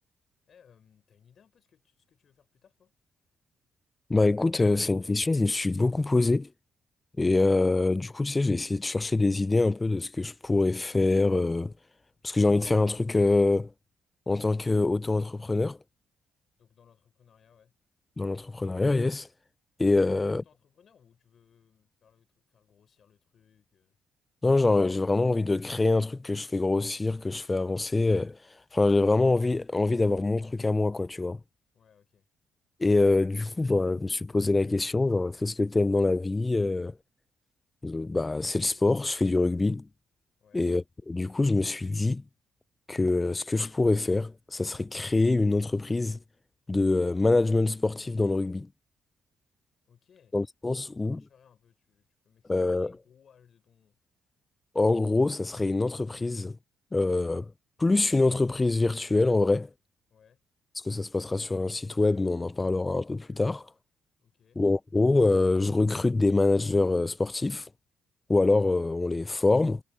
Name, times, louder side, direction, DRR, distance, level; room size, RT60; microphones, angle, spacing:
voice 1, 0.5-2.9 16.6-17.7 20.0-24.0 31.7-32.3 40.4-40.7 49.9-50.3 50.8-54.0 60.1-60.4 64.2-64.6, left 7 dB, 55° left, 4.0 m, -62 dB
voice 2, 4.1-6.5 7.2-11.7 12.2-13.7 14.3-15.8 18.2-19.3 19.8-20.4 24.4-28.4 28.7-31.4 32.8-37.0 37.8-39.9 40.5-42.2 42.9-46.2 46.7-48.7 50.3-51.2 52.5-52.9 54.8-56.6 56.9-57.5 57.8-59.7 60.8-63.7 64.6-67.7 68.3-69.8, left 2 dB, 20° left, 0.3 m, -25 dB
cardioid pair, 90°, 0 cm